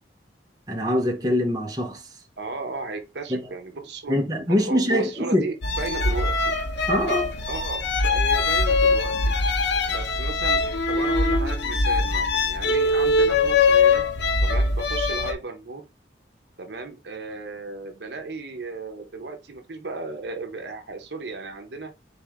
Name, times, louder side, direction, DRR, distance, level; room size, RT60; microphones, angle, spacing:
voice 1, 0.7-2.0 3.3-3.5 4.1-5.4 6.9-7.3, equal, 20° right, 0.9 m, -23 dB
voice 2, 2.4-4.1 4.5-6.5 7.5-9.2 9.9-14.0 14.4-15.8 16.6-21.9, right 3 dB, 70° right, 0.8 m, -35 dB
sound 1, 5.6-15.3, left 3 dB, 80° left, 0.8 m, -22 dB
4.3 x 3.3 x 3.5 m
head